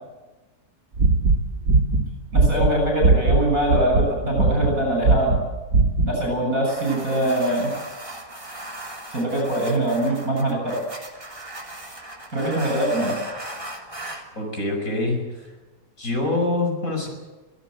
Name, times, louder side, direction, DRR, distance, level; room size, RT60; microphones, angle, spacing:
sound 1, 1.0-3.4 3.7-4.1 4.3-4.7 5.0-5.4 5.7-6.1, right 3 dB, 80° right, 2.7 m, -18 dB
voice 1, 2.3-5.4 6.0-7.7 9.1-10.8 12.3-13.1, right 1 dB, 60° right, 1 dB, 7.6 m, -23 dB
sound 2, 6.7-14.3, right 1 dB, 20° right, 3.0 m, -37 dB
voice 2, 14.3-15.5 16.0-17.1, left 2 dB, 55° left, 2 dB, 6.0 m, -25 dB
25.0 x 16.5 x 7.9 m, 1.1 s
omnidirectional pair, 1.7 m